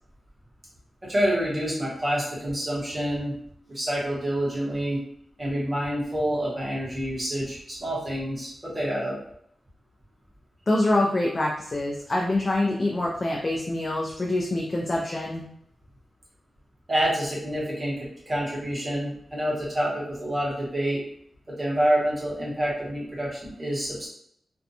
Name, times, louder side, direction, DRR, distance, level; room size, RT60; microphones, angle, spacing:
voice 1, 1.0-3.3 3.7-5.0 5.4-9.2 16.9-21.0 21.5-24.1, equal, 25° right, -6 dB, 1.1 m, -27 dB
voice 2, 10.7-15.5, left 1 dB, 30° left, -2 dB, 0.3 m, -25 dB
2.5 x 2.2 x 2.7 m, 0.68 s
wide cardioid pair, 150°, 0 cm